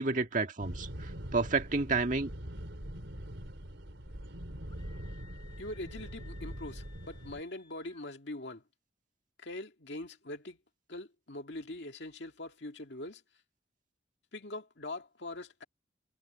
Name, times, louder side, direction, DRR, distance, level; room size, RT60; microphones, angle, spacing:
voice 1, 0.0-2.3, right 3 dB, 45° right, 1.6 m, -30 dB
sound 1, 0.6-7.4, equal, 85° right, 3.7 m, -43 dB
Screaming, 4.7-8.1, left 6 dB, 25° left, 4.0 m, -60 dB
voice 2, 5.6-8.6 9.4-10.6 10.9-13.2 14.3-15.6, left 2 dB, 65° left, 2.3 m, -42 dB
head